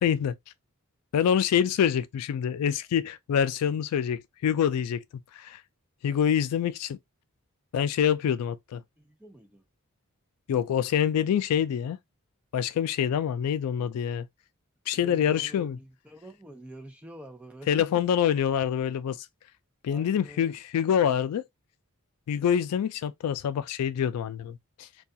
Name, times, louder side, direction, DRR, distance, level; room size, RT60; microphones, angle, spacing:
voice 1, 0.0-0.4 1.1-5.0 5.3-5.6 6.0-7.0 7.7-8.8 10.5-12.0 12.5-14.3 14.9-15.8 17.7-19.3 19.8-21.4 22.3-24.9, left 8 dB, 90° left, 0.3 m, -26 dB
voice 2, 9.0-9.6 14.9-17.7 19.9-20.6, equal, 5° right, 0.5 m, -46 dB
2.3 x 2.3 x 2.6 m
head